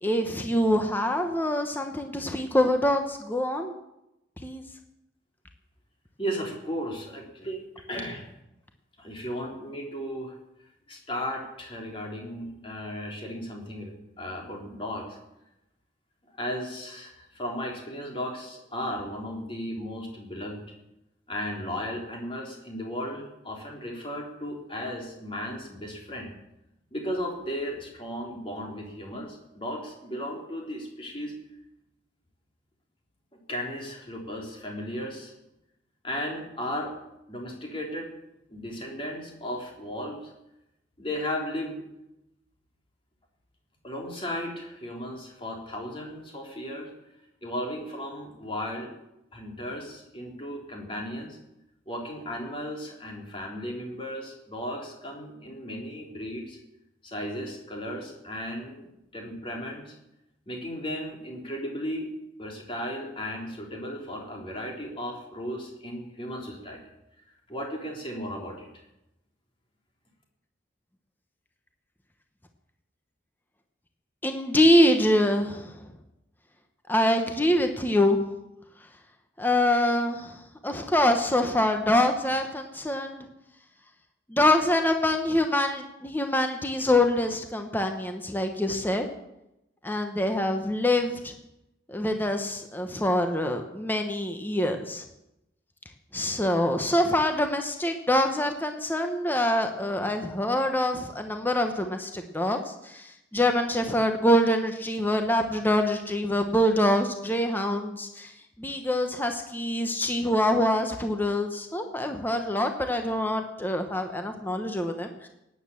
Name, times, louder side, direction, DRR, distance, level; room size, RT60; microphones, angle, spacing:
voice 1, 0.0-3.7 4.4-4.6 74.2-75.7 76.9-78.2 79.4-80.4 80.6-83.2 84.3-89.1 89.8-91.3 91.9-95.0 96.1-108.3 108.6-115.3, left 1 dB, 10° left, 5 dB, 1.1 m, -25 dB
voice 2, 6.2-8.2 9.0-10.4 10.9-15.2 16.3-20.6 21.3-26.3 26.9-31.4 33.5-35.3 36.0-36.9 37.3-38.1 38.5-40.3 41.0-41.8 43.8-46.9 47.4-48.9 49.3-51.4 51.9-56.6 57.0-58.9 59.1-59.9 60.5-62.1 62.4-66.8 67.5-68.7, equal, 30° left, 0 dB, 3.6 m, -35 dB
18.0 x 9.8 x 7.1 m, 0.89 s
head